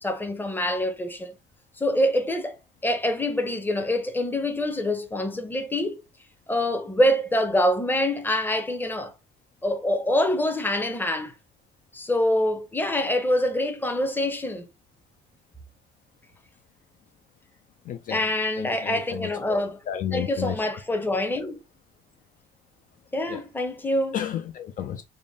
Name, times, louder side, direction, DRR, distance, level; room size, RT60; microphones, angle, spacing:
voice 1, 0.0-1.3 1.8-2.6 2.8-6.0 6.5-9.1 9.6-11.3 11.9-14.7 18.1-19.8 20.1-21.6 23.1-24.2, left 1 dB, 10° left, 0.7 m, -25 dB
voice 2, 17.9-18.2 18.6-20.5 23.3-23.4 24.1-25.0, left 10 dB, 50° left, 0.4 m, -32 dB
3.5 x 2.1 x 3.8 m
cardioid pair, 110°, 17 cm